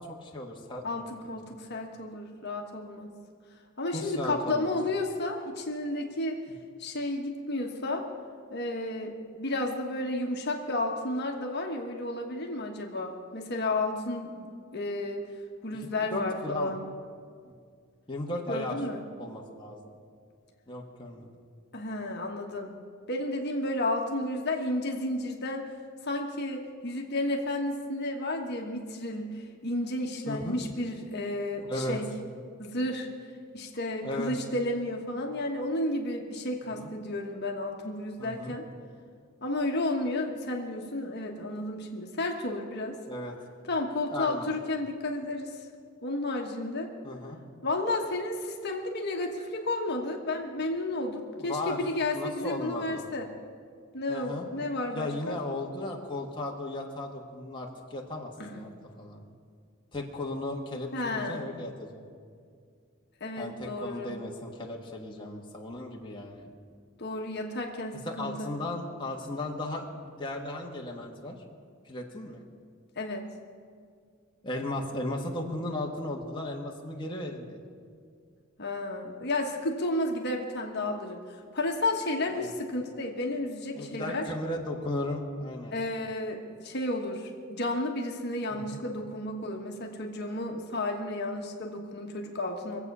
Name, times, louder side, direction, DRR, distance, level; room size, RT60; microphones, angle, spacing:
voice 1, 0.0-0.8 1.5-1.6 3.9-4.7 15.7-16.7 18.1-18.8 19.2-19.9 20.7-21.3 30.3-30.6 31.6-32.0 34.0-34.3 36.8-36.9 38.2-38.5 43.1-43.3 44.1-44.5 47.0-47.4 51.4-51.8 52.1-53.0 54.1-54.5 54.9-59.2 59.9-62.0 63.4-66.5 68.2-71.4 71.8-72.4 74.4-77.6 82.3-82.5 83.7-85.8 88.5-88.8, left 1 dB, 25° left, -1 dB, 1.4 m, -36 dB
voice 2, 0.8-3.2 3.8-6.4 6.8-8.0 8.5-15.3 15.6-16.8 18.5-19.0 21.7-22.7 23.1-25.6 26.0-32.1 32.6-33.1 33.5-38.6 39.4-43.0 43.6-45.7 46.0-46.9 47.6-53.3 53.9-55.4 58.4-58.6 60.9-61.5 63.2-64.2 67.0-68.5 73.0-73.2 78.6-84.3 85.7-92.8, left 2 dB, 50° left, 2 dB, 1.3 m, -32 dB
23.0 x 8.2 x 6.1 m, 2.1 s
head